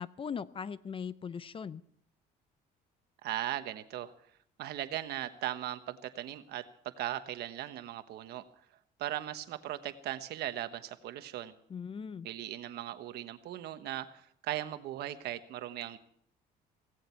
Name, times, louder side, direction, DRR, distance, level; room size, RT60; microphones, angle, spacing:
voice 1, 0.0-1.8 11.7-12.3, left 6 dB, 30° left, 16 dB, 0.6 m, -39 dB
voice 2, 3.2-4.1 4.6-8.5 9.0-11.5 12.2-16.0, right 13 dB, 75° right, 10 dB, 1.2 m, -38 dB
17.0 x 16.5 x 4.5 m, 0.65 s
cardioid pair, 110°, 17 cm